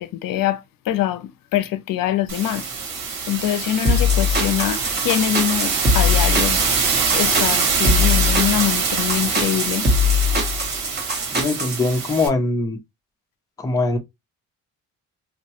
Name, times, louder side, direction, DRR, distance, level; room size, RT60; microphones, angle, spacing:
voice 1, 0.0-2.6 3.3-6.6 7.1-9.9, left 12 dB, 70° left, 0.5 m, -24 dB
sound 1, 2.3-12.3, right 5 dB, 70° right, 1.7 m, -24 dB
sound 2, 3.8-11.8, left 3 dB, 30° right, 1.1 m, -21 dB
voice 2, 11.3-12.8 13.6-14.0, left 2 dB, 10° left, 0.4 m, -22 dB
5.2 x 2.1 x 2.8 m
cardioid pair, 160°, 35 cm